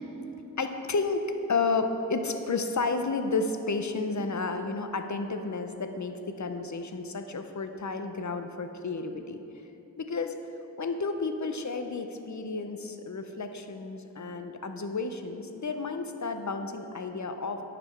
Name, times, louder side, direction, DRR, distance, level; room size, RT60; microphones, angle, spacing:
voice 1, 0.6-9.4 10.0-10.3 10.8-17.6, left 4 dB, 55° left, 7 dB, 0.6 m, -31 dB
9.4 x 5.1 x 5.7 m, 3.0 s
wide cardioid pair, 60°, 35 cm